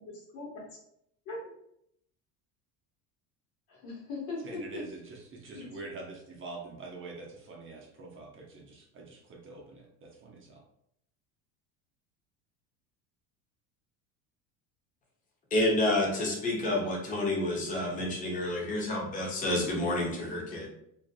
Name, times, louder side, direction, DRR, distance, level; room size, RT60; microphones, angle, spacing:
voice 1, 0.1-0.6 1.3-1.4 3.7-4.8 5.5-5.8, left 3 dB, 60° left, -3 dB, 1.3 m, -40 dB
voice 2, 4.4-10.6, right 3 dB, 30° right, -1 dB, 0.6 m, -45 dB
voice 3, 15.5-20.7, left 1 dB, 20° left, -2 dB, 0.7 m, -29 dB
2.5 x 2.4 x 2.3 m, 0.74 s
supercardioid pair, 100°, 39 cm